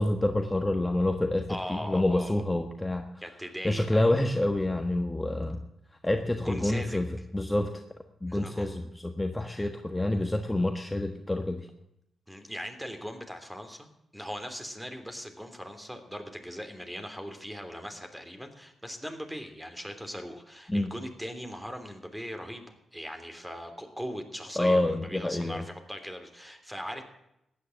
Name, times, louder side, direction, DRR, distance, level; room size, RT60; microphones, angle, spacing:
voice 1, 0.0-3.0 3.6-5.6 6.0-7.8 8.2-8.7 8.9-11.7 20.7-20.9 24.6-25.7, left 1 dB, 15° left, 5 dB, 1.4 m, -27 dB
voice 2, 1.5-2.4 3.2-4.4 6.4-7.0 8.3-8.7 9.5-9.7 12.3-27.0, equal, 5° right, 6 dB, 3.2 m, -40 dB
14.5 x 9.8 x 7.8 m, 0.84 s
supercardioid pair, 45°, 0 cm